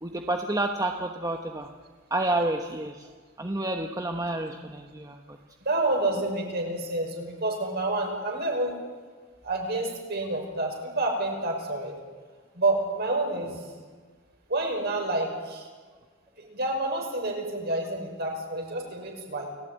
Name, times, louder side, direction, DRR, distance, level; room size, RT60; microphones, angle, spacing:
voice 1, 0.0-1.7 2.1-3.1 3.4-5.4, right 2 dB, 15° right, 4 dB, 1.2 m, -29 dB
voice 2, 5.6-8.7 9.4-12.0 12.6-13.7 14.5-15.7 16.5-19.5, right 2 dB, 50° right, 2 dB, 5.8 m, -28 dB
29.5 x 18.5 x 9.3 m, 1.5 s
head